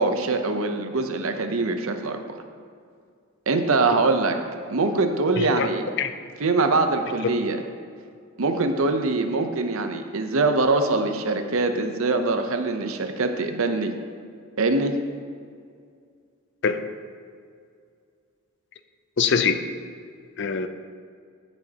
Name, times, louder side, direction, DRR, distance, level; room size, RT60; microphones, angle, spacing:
voice 1, 0.0-2.2 3.5-4.4 4.7-5.8 6.4-7.6 8.4-13.9 14.6-15.0, right 3 dB, 70° right, 6 dB, 0.7 m, -23 dB
voice 2, 5.4-5.7 6.0-6.1 16.6-16.9 19.2-19.6 20.4-20.7, left 6 dB, 55° left, 9 dB, 0.5 m, -23 dB
15.0 x 6.3 x 2.9 m, 2.2 s
head